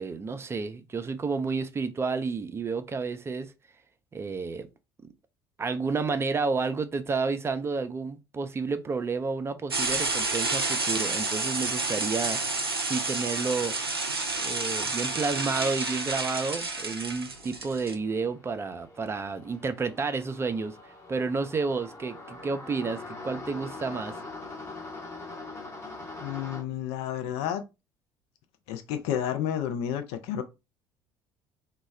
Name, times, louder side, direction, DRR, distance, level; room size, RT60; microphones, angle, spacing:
voice 1, 0.0-3.5 4.1-4.7 5.6-12.4 12.8-13.7 14.4-20.8 21.1-24.2, right 4 dB, 20° right, 0.4 m, -30 dB
sound 1, 9.7-17.9, right 3 dB, 90° right, 0.4 m, -30 dB
sound 2, 16.7-26.6, left 2 dB, 20° left, 0.8 m, -43 dB
voice 2, 26.2-27.6 28.7-30.4, left 10 dB, 60° left, 0.5 m, -31 dB
2.2 x 2.0 x 3.3 m
figure-of-eight pair, 55°, 12 cm